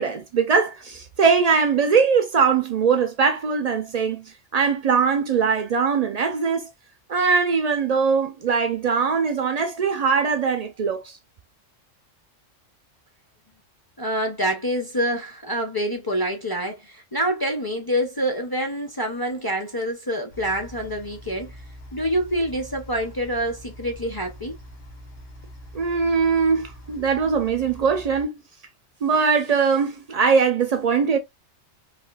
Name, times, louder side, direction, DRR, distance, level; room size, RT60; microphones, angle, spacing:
voice 1, 0.0-4.2 4.5-6.7 7.1-11.2 25.7-28.4 29.0-31.2, right 5 dB, 80° right, 0.3 m, -21 dB
voice 2, 14.0-21.6 21.9-24.6, equal, 30° left, 0.4 m, -26 dB
sound 1, 20.3-28.3, equal, 85° left, 2.4 m, -43 dB
4.1 x 2.8 x 2.3 m
omnidirectional pair, 1.3 m